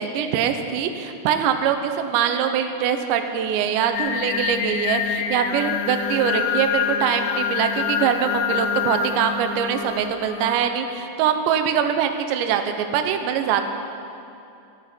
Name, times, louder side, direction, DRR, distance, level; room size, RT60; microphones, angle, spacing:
voice 1, 0.0-13.7, right 8 dB, 80° right, 7 dB, 3.1 m, -23 dB
Singing, 3.9-10.5, left 8 dB, 85° left, 3.0 m, -26 dB
20.5 x 14.5 x 4.4 m, 2.6 s
omnidirectional pair, 5.1 m